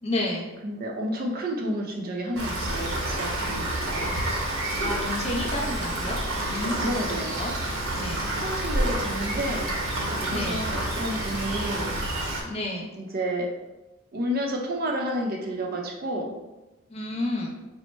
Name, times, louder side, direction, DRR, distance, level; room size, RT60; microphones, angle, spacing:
voice 1, 0.0-0.5 4.8-7.0 7.3-7.5 7.9-8.2 10.3-10.7 12.4-12.9 16.9-17.5, left 1 dB, 30° left, -2 dB, 0.7 m, -31 dB
voice 2, 0.6-4.2 6.8-7.4 8.3-9.7 10.1-12.0 13.0-13.5 14.1-16.3, equal, 45° right, 1 dB, 0.6 m, -31 dB
Rain, 2.4-12.4, right 1 dB, 65° right, 0.9 m, -29 dB
4.3 x 2.1 x 4.3 m, 1.0 s
head